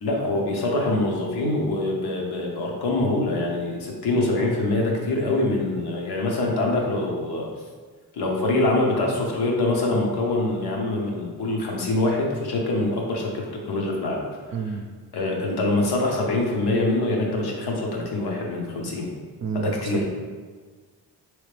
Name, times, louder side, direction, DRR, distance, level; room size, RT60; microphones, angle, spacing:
voice 1, 0.0-7.5 8.2-14.2 14.6-14.8 15.1-19.1 19.5-20.1, left 2 dB, 80° left, -1 dB, 1.0 m, -24 dB
voice 2, 14.5-14.8 19.4-19.8, right 5 dB, 45° right, 5 dB, 0.5 m, -29 dB
4.2 x 3.2 x 3.3 m, 1.5 s
cardioid pair, 90°, 39 cm